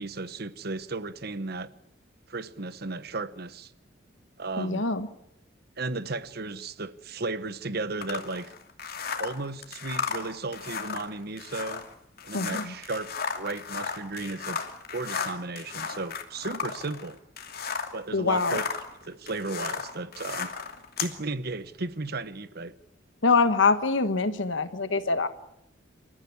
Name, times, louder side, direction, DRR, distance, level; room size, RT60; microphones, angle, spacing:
voice 1, 0.0-1.7 2.3-3.7 4.4-4.8 5.8-8.5 9.2-11.8 12.2-14.6 14.9-17.2 17.9-18.7 19.0-20.5 21.0-22.7, right 3 dB, 55° right, 1.1 m, -34 dB
voice 2, 4.6-5.1 12.3-12.7 18.1-18.6 23.2-25.3, left 4 dB, 75° left, 1.5 m, -24 dB
sound 1, 8.0-18.0 18.3-21.2, left 6 dB, 55° left, 2.6 m, -35 dB
28.0 x 14.5 x 9.7 m
head